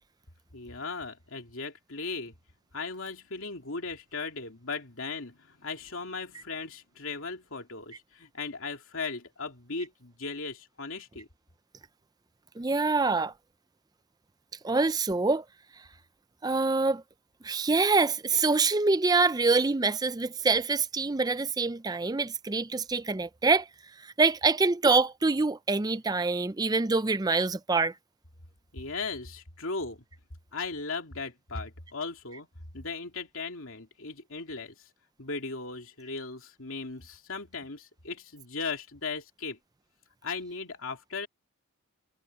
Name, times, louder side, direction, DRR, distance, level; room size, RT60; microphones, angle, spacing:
voice 1, 0.5-2.3 2.7-11.3 28.7-30.0 30.5-32.5 32.7-34.7 35.2-39.6 40.2-41.3, left 4 dB, 65° left, 2.9 m, -37 dB
voice 2, 12.6-13.3 14.6-15.4 16.4-17.0 17.4-23.7 24.0-27.9, right 3 dB, 15° right, 0.4 m, -25 dB
head